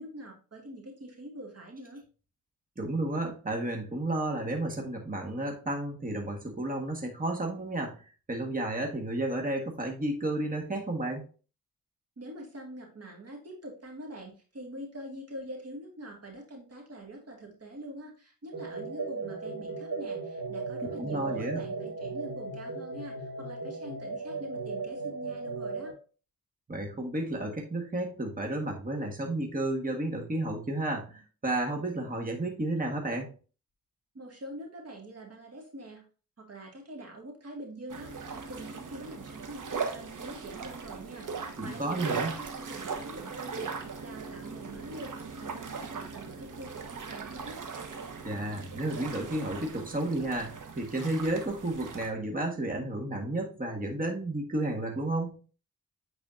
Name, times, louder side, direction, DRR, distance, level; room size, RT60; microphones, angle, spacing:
voice 1, 0.0-2.0 12.2-25.9 34.1-36.0 36.4-47.6, right 1 dB, 45° right, 1 dB, 2.1 m, -45 dB
voice 2, 2.8-8.0 8.3-11.2 21.0-21.6 26.7-33.3 41.6-42.3 48.2-55.4, right 1 dB, 25° right, 2 dB, 1.6 m, -32 dB
sound 1, 18.5-25.9, right 3 dB, 75° right, 2.1 m, -36 dB
sound 2, 37.9-52.1, right 5 dB, 60° right, 1.3 m, -39 dB
8.7 x 4.1 x 2.6 m, 0.35 s
cardioid pair, 75°, 35 cm